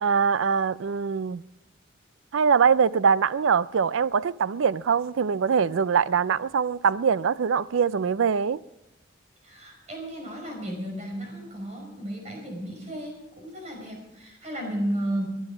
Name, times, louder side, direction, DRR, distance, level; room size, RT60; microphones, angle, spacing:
voice 1, 0.0-1.4 2.3-8.6, right 6 dB, 80° right, 0.4 m, -23 dB
voice 2, 9.4-15.3, right 1 dB, 35° right, 5.5 m, -33 dB
21.5 x 10.5 x 5.0 m
head